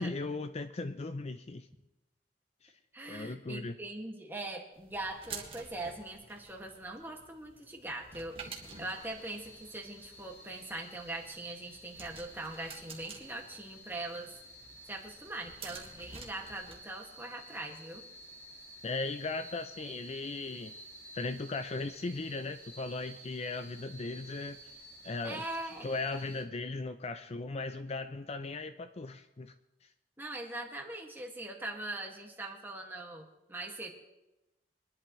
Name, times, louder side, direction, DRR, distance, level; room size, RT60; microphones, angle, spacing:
voice 1, 0.0-1.7 2.6-2.7 3.1-3.7 18.8-20.7 21.1-24.7 25.0-25.4 25.8-29.5 29.8-29.9, left 3 dB, 35° left, 10 dB, 0.5 m, -37 dB
voice 2, 2.9-14.3 14.9-18.0 25.2-25.9 30.2-33.9, right 2 dB, 10° right, 0 dB, 2.0 m, -41 dB
sound 1, 4.7-16.8, right 4 dB, 35° right, 1.9 m, -50 dB
sound 2, 8.4-26.4, equal, 15° left, 1.8 m, -52 dB
24.0 x 11.0 x 3.2 m, 0.95 s
head